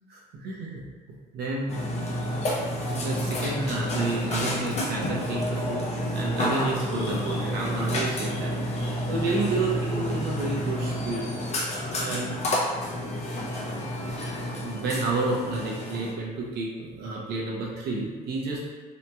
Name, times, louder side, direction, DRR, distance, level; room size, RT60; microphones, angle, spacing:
voice 1, 0.1-0.8 1.3-1.7 2.8-5.8 6.1-8.6 9.1-11.2 12.0-12.5 14.6-18.7, right 3 dB, 70° right, -2 dB, 0.7 m, -30 dB
Burping eructation, 1.7-16.1, equal, 40° left, 0.6 m, -29 dB
2.8 x 2.8 x 2.2 m, 1.4 s
cardioid pair, 110°, 17 cm